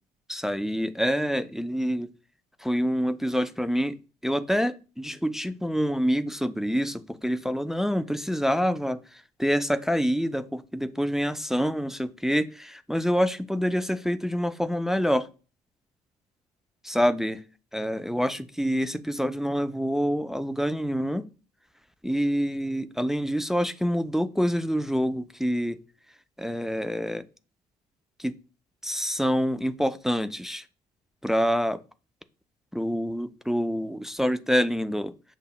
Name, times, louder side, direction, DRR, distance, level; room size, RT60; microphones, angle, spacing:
voice 1, 0.3-2.1 2.6-4.0 4.2-9.0 9.4-15.3 16.8-17.4 17.7-21.3 22.0-25.8 26.4-27.2 28.2-28.3 28.8-30.6 31.2-31.8 32.7-35.1, equal, ahead, 10 dB, 0.4 m, -26 dB
6.5 x 2.9 x 2.3 m, 0.35 s
figure-of-eight pair, 50°, 20 cm